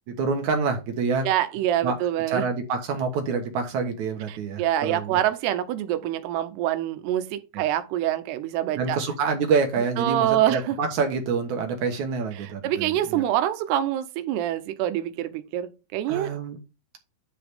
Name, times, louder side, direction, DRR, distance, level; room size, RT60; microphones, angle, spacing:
voice 1, 0.1-1.3 1.8-2.0 2.3-5.2 7.5-7.6 8.8-13.2 16.1-16.6, right 5 dB, 60° right, 2.1 m, -27 dB
voice 2, 1.2-2.5 4.3-9.0 10.0-10.8 12.4-16.3, right 12 dB, 85° right, 2.8 m, -26 dB
10.0 x 4.9 x 3.5 m
omnidirectional pair, 4.8 m